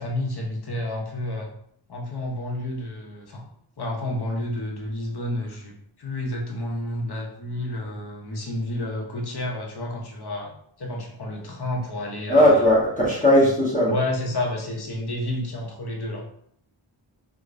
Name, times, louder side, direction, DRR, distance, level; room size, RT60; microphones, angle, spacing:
voice 1, 0.0-1.5 1.9-3.4 3.8-5.7 6.0-10.5 10.8-12.7 13.9-16.2, left 1 dB, 50° left, 0 dB, 0.8 m, -30 dB
voice 2, 12.3-14.0, left 1 dB, 15° left, -8 dB, 0.9 m, -18 dB
2.9 x 2.2 x 2.5 m, 0.67 s
wide cardioid pair, 50°, 50 cm